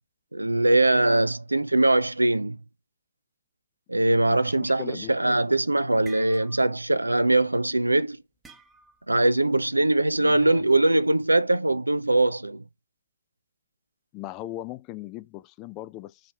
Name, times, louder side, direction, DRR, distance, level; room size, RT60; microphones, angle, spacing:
voice 1, 0.3-2.6 3.9-8.2 9.1-12.6, right 2 dB, 85° right, 0.5 m, -22 dB
voice 2, 4.2-5.4 10.2-10.6 14.1-16.3, left 15 dB, 30° left, 0.6 m, -39 dB
sound 1, 5.5-5.6 5.8-6.9 7.2-7.4 8.4-9.1, right 4 dB, 10° right, 1.0 m, -50 dB
5.6 x 5.1 x 6.5 m
figure-of-eight pair, 120°, 0 cm